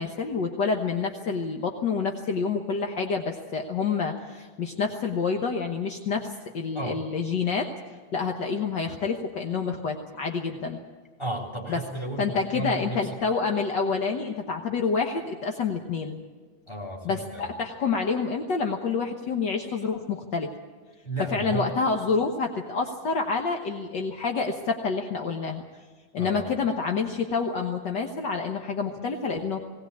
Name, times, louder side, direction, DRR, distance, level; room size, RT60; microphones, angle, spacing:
voice 1, 0.0-7.7 8.1-10.8 11.7-11.8 12.2-16.2 17.0-20.5 21.3-25.6 26.1-29.6, left 5 dB, 60° left, 3 dB, 1.2 m, -28 dB
voice 2, 11.2-13.0 16.7-17.5 21.0-21.7 26.2-26.5, right 2 dB, 10° left, -1 dB, 3.9 m, -33 dB
19.0 x 18.5 x 8.5 m, 1.5 s
omnidirectional pair, 3.4 m